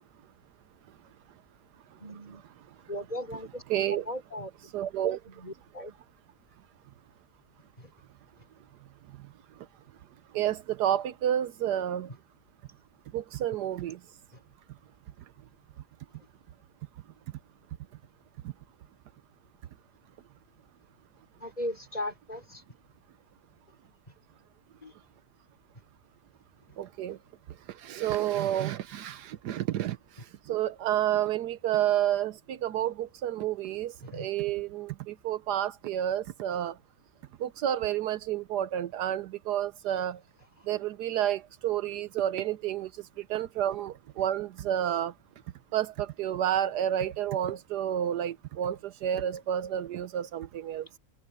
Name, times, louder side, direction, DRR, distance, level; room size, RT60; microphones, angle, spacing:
voice 1, 2.0-2.4 2.9-3.6 3.9-4.5 5.3-5.9 7.8-7.9 12.1-12.2 21.4-22.6 24.8-24.9 34.1-34.3 40.0-40.1, left 1 dB, 20° left, 4.8 m, -37 dB
voice 2, 3.7-4.0 4.7-5.2 10.3-12.1 13.1-14.0 18.4-18.5 26.8-27.2 27.7-36.8 37.4-40.2 40.7-45.1 45.7-51.0, right 11 dB, 75° right, 1.3 m, -30 dB
omnidirectional pair, 1.8 m